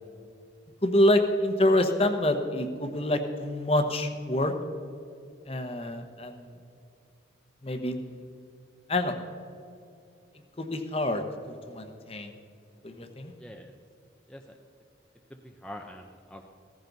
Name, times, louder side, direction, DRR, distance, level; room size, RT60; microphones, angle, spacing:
voice 1, 0.8-4.5 5.5-6.4 7.6-8.2 8.9-9.2 10.6-11.2 11.5-12.3 12.8-13.3, left 1 dB, 30° left, 6 dB, 1.0 m, -26 dB
voice 2, 13.4-13.7 14.3-14.6 15.3-16.4, left 1 dB, 5° left, 1 dB, 0.6 m, -45 dB
16.0 x 14.5 x 4.0 m, 2.6 s
head